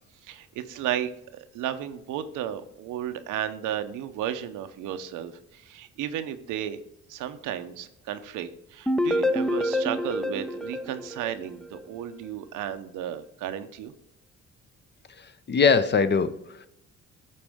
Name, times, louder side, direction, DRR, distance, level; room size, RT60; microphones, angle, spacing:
voice 1, 0.2-6.8 7.1-13.9, right 10 dB, 90° right, 9 dB, 0.8 m, -33 dB
sound 1, 8.9-11.8, left 1 dB, ahead, 0.4 m, -27 dB
voice 2, 15.2-16.7, left 5 dB, 35° left, 12 dB, 0.7 m, -23 dB
13.0 x 4.3 x 3.5 m, 0.81 s
cardioid pair, 90°, 30 cm